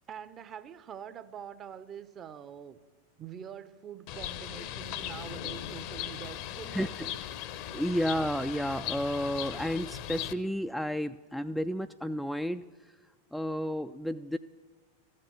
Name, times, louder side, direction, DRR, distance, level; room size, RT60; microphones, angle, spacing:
voice 1, 0.1-2.8 3.2-7.2, right 8 dB, 30° right, 0.7 m, -45 dB
Bird, 4.1-10.3, left 11 dB, 45° left, 0.7 m, -38 dB
voice 2, 6.7-7.1 7.7-12.6 13.3-14.4, equal, ahead, 0.3 m, -32 dB
14.0 x 7.6 x 9.7 m
figure-of-eight pair, 90°, 0 cm